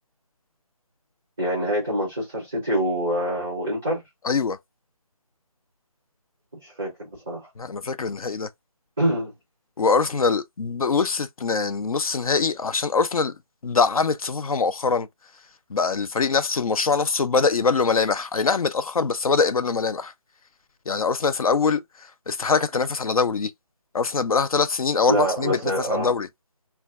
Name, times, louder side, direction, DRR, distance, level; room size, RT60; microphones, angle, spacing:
voice 1, 1.4-4.0 6.5-7.5 9.0-9.3 25.1-26.1, right 1 dB, 5° right, 0.4 m, -25 dB
voice 2, 4.2-4.6 7.6-8.5 9.8-13.4 13.6-15.1 15.7-20.1 20.9-23.5 23.9-26.3, left 4 dB, 70° left, 0.5 m, -23 dB
2.5 x 2.2 x 3.3 m
figure-of-eight pair, 160°, 19 cm